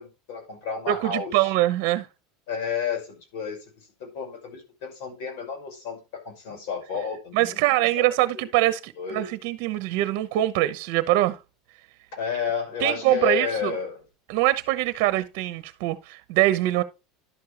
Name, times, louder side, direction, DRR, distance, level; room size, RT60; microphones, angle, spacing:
voice 1, 0.0-1.5 2.5-3.6 4.0-7.7 8.0-8.1 8.3-8.4 9.0-9.3 12.1-14.0, left 6 dB, 70° left, 5.9 m, -31 dB
voice 2, 0.9-2.1 7.3-11.4 12.8-13.8 14.3-16.8, right 15 dB, 65° right, 0.9 m, -23 dB
11.5 x 6.7 x 3.3 m
supercardioid pair, 140°, 0 cm